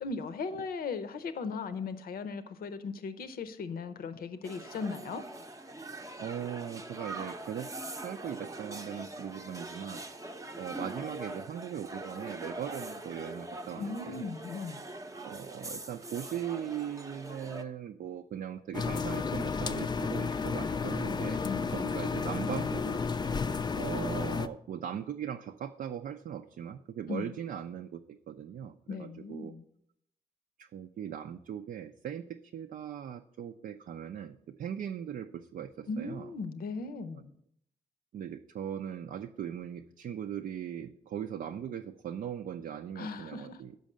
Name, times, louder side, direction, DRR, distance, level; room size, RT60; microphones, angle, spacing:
voice 1, 0.0-5.2 13.8-14.8 21.4-21.7 27.1-27.3 28.9-29.6 35.9-37.3 43.0-43.6, left 4 dB, 65° left, 11 dB, 0.7 m, -37 dB
sound 1, 4.4-17.6, right 2 dB, 20° right, 0.7 m, -43 dB
voice 2, 6.2-10.0 10.6-14.3 15.2-21.4 21.7-23.0 23.8-29.5 30.6-36.3 38.1-43.8, right 9 dB, 60° right, 6 dB, 0.4 m, -39 dB
sound 2, 18.7-24.5, left 5 dB, 25° left, 0.5 m, -32 dB
6.3 x 5.2 x 6.5 m, 0.73 s
supercardioid pair, 50°, 16 cm